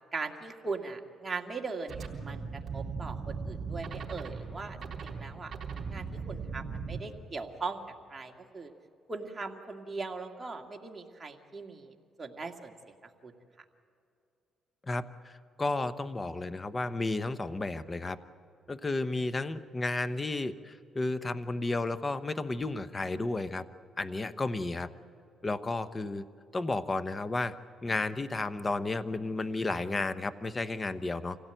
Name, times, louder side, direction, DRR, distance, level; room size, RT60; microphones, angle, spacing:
voice 1, 0.1-5.5 5.9-7.8 8.1-8.7 9.1-13.3, right 4 dB, 25° right, 2 dB, 2.0 m, -40 dB
sound 1, 1.9-7.0, right 5 dB, 50° right, 3.7 m, -38 dB
voice 2, 14.8-18.2 18.7-23.6 24.0-24.9 25.4-26.2 26.5-27.5 27.8-31.4, left 2 dB, 25° left, 13 dB, 0.9 m, -32 dB
26.0 x 17.0 x 9.1 m, 2.5 s
cardioid pair, 90°, 0 cm